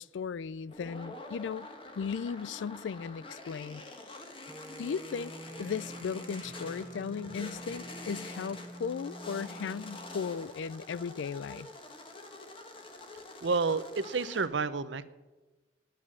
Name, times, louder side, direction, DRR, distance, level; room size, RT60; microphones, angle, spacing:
voice 1, 0.0-1.7 2.0-3.8 4.8-5.3 5.6-11.7, left 6 dB, 85° left, 0.4 m, -36 dB
sound 1, 0.7-14.5, left 2 dB, 30° left, 1.4 m, -46 dB
sound 2, 4.5-10.5, equal, 5° right, 0.3 m, -47 dB
sound 3, 5.4-9.1, right 2 dB, 50° right, 1.5 m, -55 dB
voice 2, 13.4-15.0, right 4 dB, 80° right, 0.7 m, -30 dB
10.0 x 9.7 x 7.5 m
head